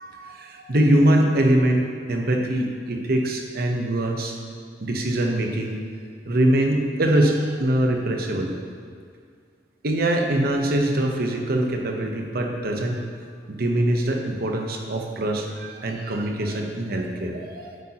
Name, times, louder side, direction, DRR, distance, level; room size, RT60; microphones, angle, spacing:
voice 1, 0.0-4.3 4.8-5.8 6.3-8.5 9.8-13.0 13.5-17.8, right 1 dB, 55° right, 2 dB, 0.9 m, -23 dB
8.4 x 8.2 x 2.9 m, 2.2 s
head